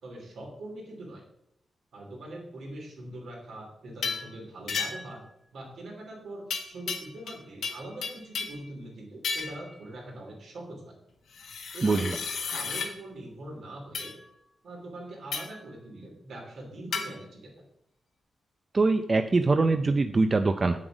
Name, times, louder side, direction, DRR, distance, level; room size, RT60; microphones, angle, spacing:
voice 1, 0.0-1.2 1.9-5.2 5.5-10.9 11.7-12.2 12.5-14.1 14.6-17.5, right 1 dB, 75° right, -1 dB, 3.2 m, -42 dB
sound 1, 4.0-4.3 4.7-5.2 6.5-7.4 7.6-8.6 9.2-9.6 11.3-12.9 13.9-14.1 15.3-15.6 16.9-17.1, left 5 dB, 85° left, 1.6 m, -33 dB
voice 2, 11.8-12.2 18.7-20.8, right 3 dB, 35° right, 8 dB, 0.5 m, -23 dB
8.0 x 7.4 x 5.0 m, 0.78 s
cardioid pair, 95°, 0 cm